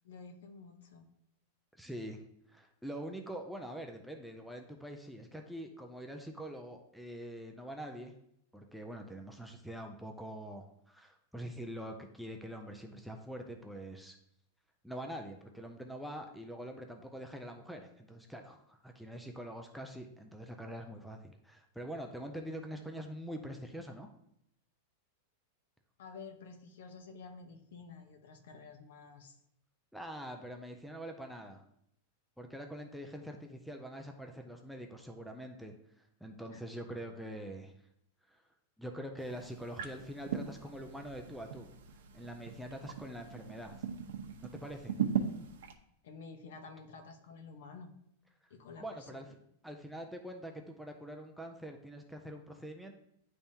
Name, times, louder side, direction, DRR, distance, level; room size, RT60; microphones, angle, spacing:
voice 1, 0.0-1.1 26.0-29.4 36.5-36.6 46.0-47.9 48.5-49.2, left 4 dB, 65° left, 6 dB, 0.9 m, -50 dB
voice 2, 1.8-2.2 2.5-8.1 8.5-14.2 14.8-24.1 29.9-31.6 32.4-37.7 38.3-38.4 38.8-41.7 42.1-43.8 44.4-44.9 48.8-49.3 49.6-52.9, equal, ahead, 2 dB, 0.3 m, -44 dB
sound 1, 39.2-45.7, right 8 dB, 85° right, 0.8 m, -39 dB
10.0 x 3.4 x 2.7 m, 0.74 s
supercardioid pair, 175°, 0 cm